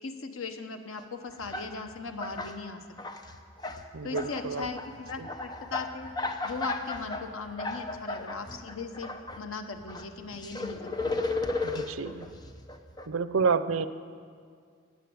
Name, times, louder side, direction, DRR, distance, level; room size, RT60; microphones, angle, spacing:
voice 1, 0.0-2.8 4.0-6.1 6.4-11.3, left 4 dB, 90° left, 6 dB, 1.1 m, -38 dB
sound 1, 1.0-1.1 1.3-2.5 2.9-3.8 4.1-9.4 9.7-13.1, left 2 dB, 20° left, 0.7 m, -35 dB
voice 2, 3.9-4.7 5.2-5.3 11.6-12.3 13.1-13.9, right 5 dB, 85° right, 13 dB, 0.6 m, -29 dB
15.0 x 9.8 x 7.9 m, 2.1 s
head